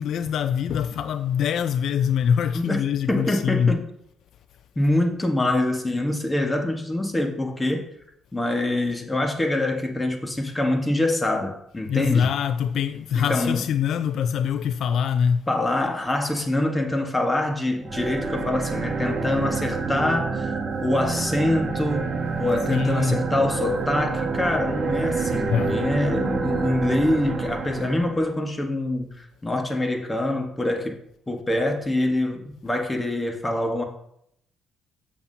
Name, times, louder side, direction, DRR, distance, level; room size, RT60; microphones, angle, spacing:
voice 1, 0.0-3.8 11.9-15.5 22.7-23.2 25.5-25.8, left 8 dB, 70° left, 0.3 m, -24 dB
voice 2, 3.1-3.8 4.8-7.9 8.3-12.3 13.1-13.6 15.5-20.5 20.8-31.0 31.3-33.8, left 1 dB, 15° left, 1.3 m, -25 dB
sound 1, 17.8-28.3, right 4 dB, 45° right, 1.4 m, -28 dB
7.1 x 7.1 x 2.7 m
cardioid pair, 90°, 0 cm